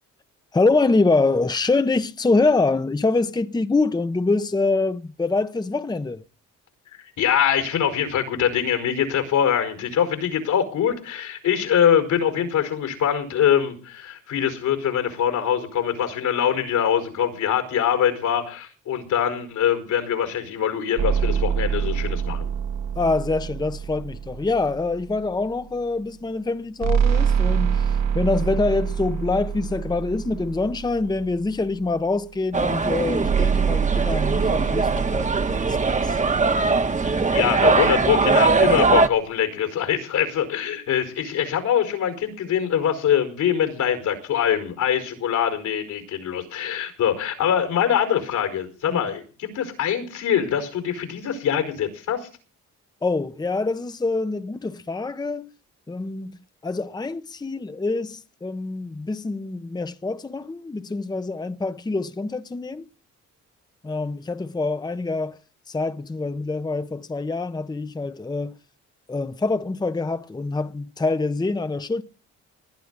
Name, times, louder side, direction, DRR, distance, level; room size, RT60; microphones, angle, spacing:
voice 1, 0.5-6.2 23.0-36.2 48.9-49.0 53.0-55.5 55.9-56.4 56.6-62.9 63.8-65.4 65.7-68.6 69.1-72.0, left 3 dB, 15° left, 0.8 m, -25 dB
voice 2, 7.2-22.5 37.0-52.3, left 9 dB, 80° left, 5.0 m, -23 dB
sound 1, 21.0-25.4 26.8-31.6 33.2-37.6, right 7 dB, 65° right, 1.4 m, -26 dB
sound 2, 32.5-39.1, right 4 dB, 25° right, 1.2 m, -21 dB
20.5 x 11.0 x 4.0 m
cardioid pair, 90°, 30 cm